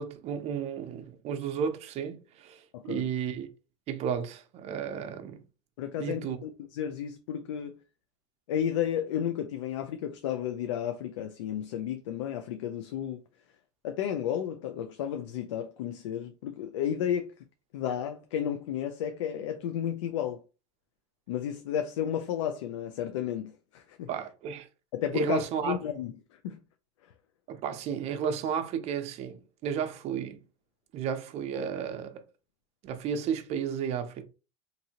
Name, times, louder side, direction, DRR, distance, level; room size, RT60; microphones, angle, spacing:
voice 1, 0.0-3.5 3.9-5.4 6.0-6.4 24.1-24.7 25.1-25.8 27.5-30.4 30.9-32.2 32.8-34.2, right 7 dB, 45° right, 0.6 m, -33 dB
voice 2, 2.7-3.1 5.8-7.7 8.5-13.2 13.8-17.3 17.7-20.4 21.3-24.1 24.9-26.6, left 9 dB, 85° left, 0.4 m, -32 dB
2.7 x 2.6 x 2.8 m
supercardioid pair, 110°, 15 cm